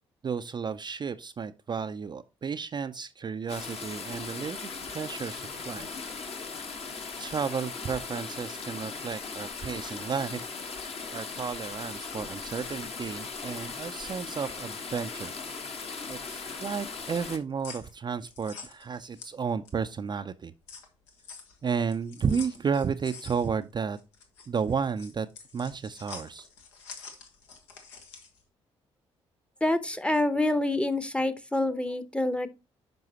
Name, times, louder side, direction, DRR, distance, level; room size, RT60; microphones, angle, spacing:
voice 1, 0.2-5.9 6.7-6.8 7.2-10.4 11.1-15.3 16.1-20.5 21.6-24.0 24.5-25.3 25.5-26.5, right 6 dB, 30° right, 0.5 m, -32 dB
sound 1, 3.5-17.4, left 4 dB, 40° left, 1.3 m, -38 dB
sound 2, 16.0-19.9 20.3-28.4, left 5 dB, 75° left, 1.2 m, -47 dB
voice 2, 29.6-32.5, left 1 dB, 5° left, 0.9 m, -27 dB
10.5 x 5.4 x 2.9 m
figure-of-eight pair, 40°, 15 cm